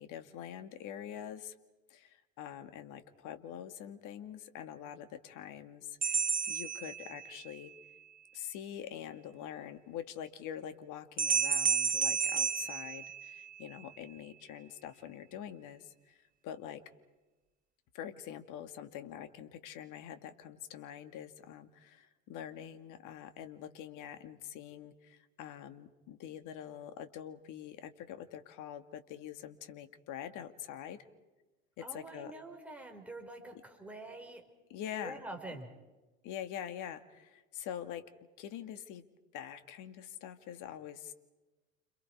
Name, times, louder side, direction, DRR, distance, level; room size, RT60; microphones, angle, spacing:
voice 1, 0.0-1.5 1.9-7.7 8.3-16.8 17.9-31.1 31.8-32.3 34.7-35.2 36.2-38.1 38.4-39.1 39.3-41.1, left 10 dB, 50° left, 10 dB, 2.2 m, -45 dB
sound 1, 6.0-7.5 11.2-13.7, right 6 dB, 20° right, 1.6 m, -31 dB
voice 2, 31.8-34.5 35.0-35.7, right 2 dB, 5° right, 2 dB, 5.4 m, -46 dB
29.5 x 28.0 x 4.9 m, 1.1 s
hypercardioid pair, 85°, 39 cm